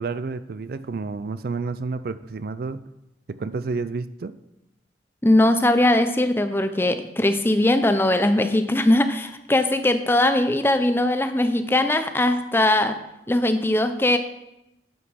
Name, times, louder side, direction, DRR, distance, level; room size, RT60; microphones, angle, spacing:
voice 1, 0.0-2.8 3.3-4.3, right 4 dB, 55° right, 14 dB, 0.4 m, -30 dB
voice 2, 5.2-13.0 13.3-14.2, left 1 dB, 15° left, 9 dB, 0.6 m, -20 dB
9.3 x 5.8 x 6.2 m, 0.89 s
head